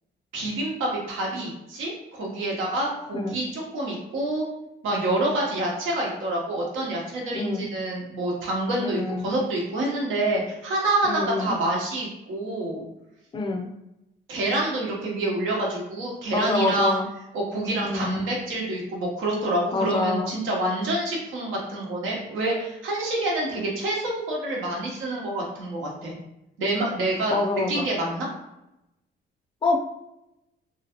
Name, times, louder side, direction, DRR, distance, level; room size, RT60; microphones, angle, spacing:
voice 1, 0.3-4.4 4.8-12.8 14.3-17.0 17.3-26.1 26.6-27.3 27.7-28.3, right 1 dB, 80° right, -3 dB, 1.0 m, -27 dB
voice 2, 7.3-7.7 8.8-9.3 11.0-11.5 13.3-13.7 16.3-17.1 17.8-18.2 19.7-20.3 27.3-27.9 29.6-29.8, left 3 dB, 25° left, 3 dB, 0.5 m, -26 dB
2.9 x 2.4 x 2.9 m, 0.88 s
cardioid pair, 90°, 20 cm